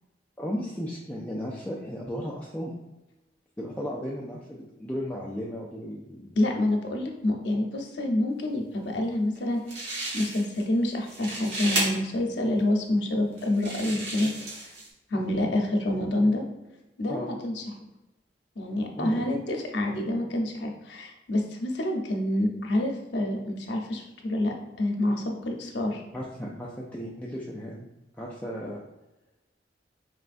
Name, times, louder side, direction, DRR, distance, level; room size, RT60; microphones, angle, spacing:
voice 1, 0.4-2.7 3.6-6.4 15.1-15.2 17.1-17.3 18.9-19.2 26.1-27.9 28.2-28.8, equal, 10° left, -3 dB, 0.4 m, -35 dB
voice 2, 6.3-14.3 15.1-16.4 17.0-17.6 18.6-26.0, left 1 dB, 85° left, 2 dB, 0.7 m, -27 dB
sound 1, 9.4-9.5 9.7-10.6 11.0-11.8 12.6-12.7 13.4-14.9, right 2 dB, 90° right, 1.4 m, -33 dB
4.8 x 3.3 x 2.5 m, 1.0 s
head